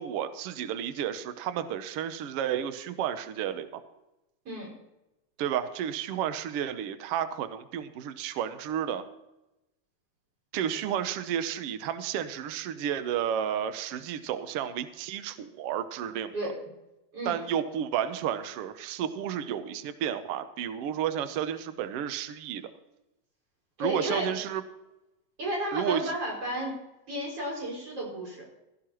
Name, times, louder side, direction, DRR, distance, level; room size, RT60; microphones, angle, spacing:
voice 1, 0.0-3.8 5.4-9.0 10.5-16.3 17.2-22.7 23.8-24.6 25.7-26.1, right 9 dB, 85° right, 10 dB, 1.3 m, -32 dB
voice 2, 23.8-24.4 25.4-26.8 27.1-28.5, right 1 dB, 45° right, -3 dB, 6.7 m, -32 dB
16.5 x 14.5 x 3.0 m, 0.93 s
omnidirectional pair, 3.8 m